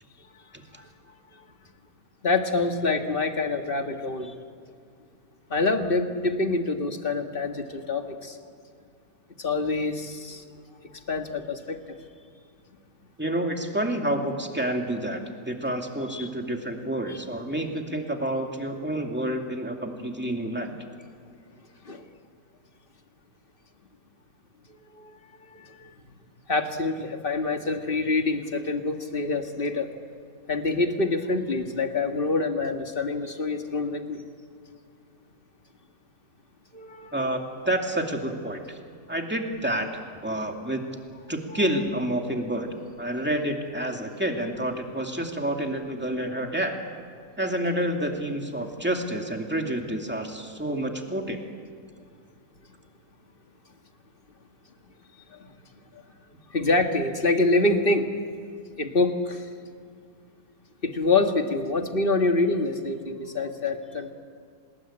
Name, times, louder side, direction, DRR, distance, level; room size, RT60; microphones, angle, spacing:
voice 1, 2.2-4.4 5.5-8.4 9.4-10.4 11.1-11.8 16.1-16.3 17.1-17.2 21.8-22.1 24.9-25.1 25.5-25.9 26.5-29.9 30.5-34.2 36.7-37.1 55.3-55.5 55.9-56.0 56.5-58.1 58.8-59.5 60.8-64.1, left 3 dB, 35° left, 5 dB, 1.8 m, -26 dB
voice 2, 13.2-20.7 37.1-38.8 39.1-39.9 40.2-40.8 41.3-42.7 43.0-46.7 47.4-51.4, right 1 dB, 5° right, 2 dB, 2.3 m, -29 dB
27.5 x 20.5 x 8.9 m, 2.2 s
omnidirectional pair, 1.7 m